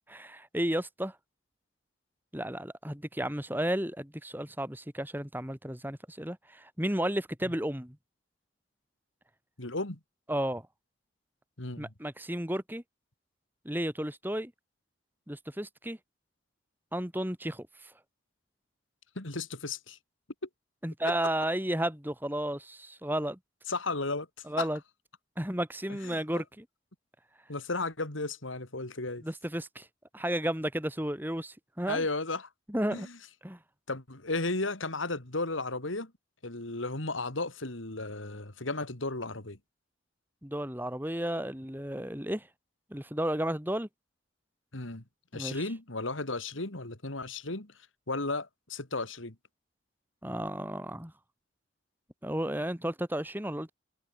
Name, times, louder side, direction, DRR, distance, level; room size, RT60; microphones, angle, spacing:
voice 1, 0.1-1.1 2.3-8.0 10.3-10.6 11.8-12.8 13.6-14.5 15.3-16.0 16.9-17.9 20.8-23.4 24.5-24.8 25.4-26.7 29.2-29.9 30.1-32.0 32.7-33.1 33.4-33.6 40.4-42.5 42.9-43.9 45.3-45.6 50.2-51.1 52.2-53.7, right 1 dB, 10° right, 2.8 m, -33 dB
voice 2, 9.6-10.0 11.6-11.9 19.1-20.0 23.7-24.3 24.6-24.7 25.9-26.4 27.5-29.2 31.9-32.5 32.9-33.1 33.9-36.1 36.4-39.6 44.7-45.0 45.3-47.7 48.1-49.3, left 3 dB, 80° left, 3.0 m, -34 dB
head